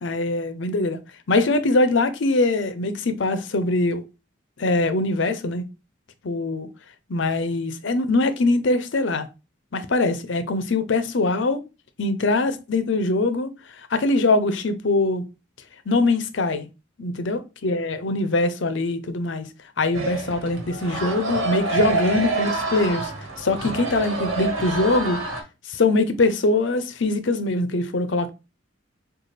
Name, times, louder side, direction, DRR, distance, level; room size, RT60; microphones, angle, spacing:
voice 1, 0.0-1.0 1.3-4.0 4.6-5.6 6.2-6.7 7.1-9.3 9.7-11.6 12.0-13.5 13.9-15.2 15.9-16.7 17.0-19.5 19.8-23.1 23.4-25.2 25.7-28.3, left 2 dB, 65° left, 0.6 m, -22 dB
sound 1, 19.9-25.4, right 3 dB, 80° right, 1.4 m, -27 dB
6.4 x 2.4 x 3.2 m
head